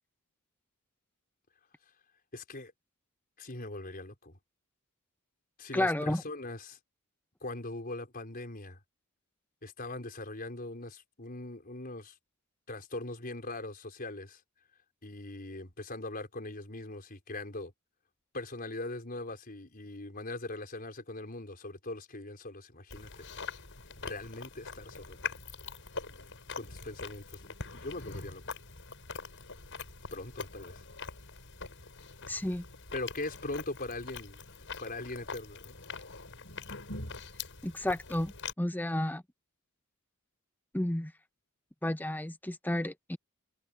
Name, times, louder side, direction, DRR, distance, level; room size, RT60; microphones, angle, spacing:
voice 1, 2.3-2.7 3.4-4.4 5.6-6.8 7.4-8.8 9.6-12.1 12.7-14.4 15.0-17.7 18.3-23.2 23.9-25.2 26.5-28.4 30.1-30.8 32.9-34.4 34.8-35.7, left 2 dB, 45° left, 5.0 m, -41 dB
voice 2, 5.7-6.2 32.3-32.6 37.6-39.2 40.7-41.1 41.8-43.2, left 1 dB, 10° left, 0.8 m, -31 dB
Chewing mastication, 22.9-38.5, left 5 dB, 60° left, 7.7 m, -43 dB
head